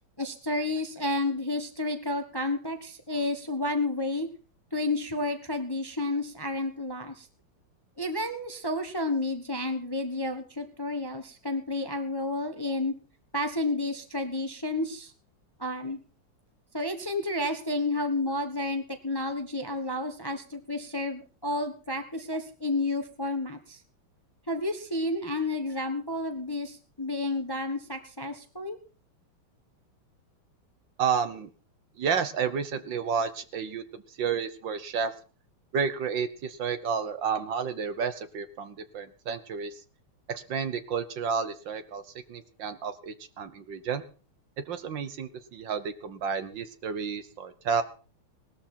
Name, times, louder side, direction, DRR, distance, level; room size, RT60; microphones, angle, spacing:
voice 1, 0.2-4.3 4.7-7.3 8.0-12.9 13.3-15.1 15.6-16.0 16.7-23.8 24.5-28.8, left 2 dB, 15° left, 7 dB, 1.1 m, -31 dB
voice 2, 31.0-31.5 32.0-35.1 35.7-39.7 40.3-42.0 42.3-44.0 44.7-47.8, right 6 dB, 60° right, 12 dB, 1.7 m, -31 dB
19.0 x 13.0 x 4.5 m, 0.37 s
omnidirectional pair, 2.4 m